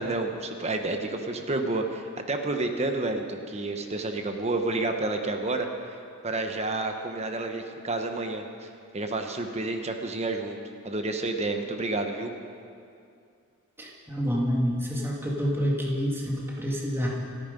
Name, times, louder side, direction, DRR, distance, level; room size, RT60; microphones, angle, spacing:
voice 1, 0.0-10.6 10.8-12.3, right 2 dB, 30° right, 5 dB, 1.0 m, -30 dB
voice 2, 13.8-17.1, equal, 10° right, -4 dB, 2.2 m, -28 dB
27.0 x 9.6 x 5.3 m, 2.4 s
head